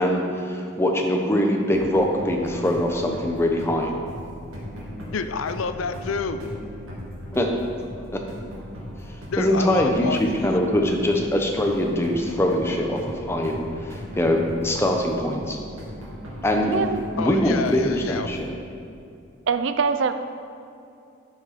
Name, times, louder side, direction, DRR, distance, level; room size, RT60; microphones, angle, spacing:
voice 1, 0.0-3.9 7.3-7.5 8.1-8.2 9.4-15.6 16.4-16.7 17.2-18.5, left 1 dB, 10° left, 2 dB, 0.7 m, -23 dB
sound 1, 1.7-18.5, equal, 90° right, 2.0 m, -38 dB
voice 2, 5.1-6.4 9.3-10.6 17.2-18.4, left 5 dB, 80° left, 10 dB, 0.5 m, -29 dB
voice 3, 16.6-17.0 19.5-20.1, right 5 dB, 65° right, 10 dB, 0.4 m, -23 dB
11.5 x 5.4 x 4.2 m, 2.5 s
head